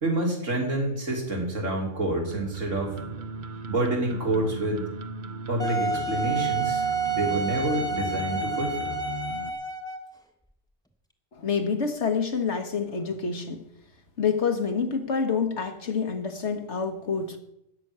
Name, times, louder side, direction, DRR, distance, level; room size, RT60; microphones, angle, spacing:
voice 1, 0.0-3.0 3.7-4.8 5.5-8.9, right 1 dB, 75° right, 0 dB, 3.7 m, -28 dB
sound 1, 2.3-9.5, right 4 dB, 45° right, 0.9 m, -38 dB
Wind instrument woodwind instrument, 5.6-10.1, right 4 dB, 5° left, 1.4 m, -29 dB
voice 2, 11.3-13.6 14.2-17.4, left 5 dB, 65° left, 6 dB, 1.8 m, -27 dB
13.5 x 6.3 x 9.9 m, 0.79 s
omnidirectional pair, 1.3 m